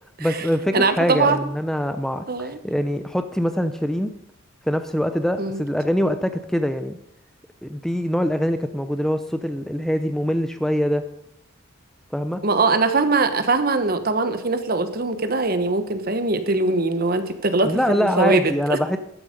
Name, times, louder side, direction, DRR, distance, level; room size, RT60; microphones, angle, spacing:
voice 1, 0.2-4.1 4.6-7.0 7.6-11.0 12.1-12.4 17.6-19.0, equal, ahead, 9 dB, 0.6 m, -23 dB
voice 2, 0.7-1.4 2.3-2.6 5.4-5.6 12.4-18.4 18.7-18.8, right 3 dB, 50° right, 9 dB, 1.2 m, -21 dB
13.5 x 11.0 x 5.3 m, 0.75 s
head